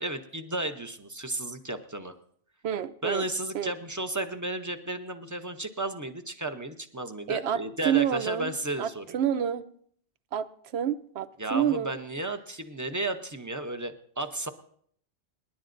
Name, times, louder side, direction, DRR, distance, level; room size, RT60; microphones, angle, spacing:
voice 1, 0.0-2.2 3.0-9.2 11.4-14.5, right 2 dB, 20° right, 8 dB, 0.6 m, -33 dB
voice 2, 2.6-3.3 3.5-3.7 7.3-8.5 8.8-9.6 10.3-10.5 10.7-12.0, right 9 dB, 70° right, 13 dB, 0.9 m, -28 dB
27.0 x 11.0 x 2.6 m, 0.63 s
omnidirectional pair, 1.2 m